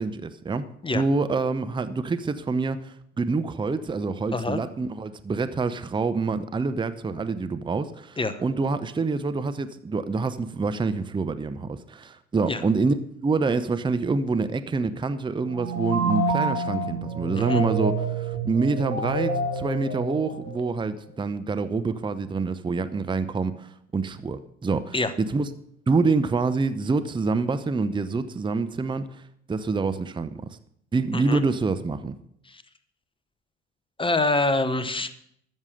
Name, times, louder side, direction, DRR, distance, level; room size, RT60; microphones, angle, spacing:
voice 1, 0.0-0.7 0.9-25.5 25.9-29.0 29.5-30.6 30.9-32.1, right 4 dB, 15° right, 12 dB, 0.7 m, -26 dB
sound 1, 15.5-20.9, right 3 dB, 65° right, 5.7 m, -28 dB
voice 2, 34.0-35.1, left 2 dB, 15° left, 12 dB, 1.0 m, -25 dB
13.0 x 7.3 x 6.5 m, 0.72 s
hypercardioid pair, 65°, 36 cm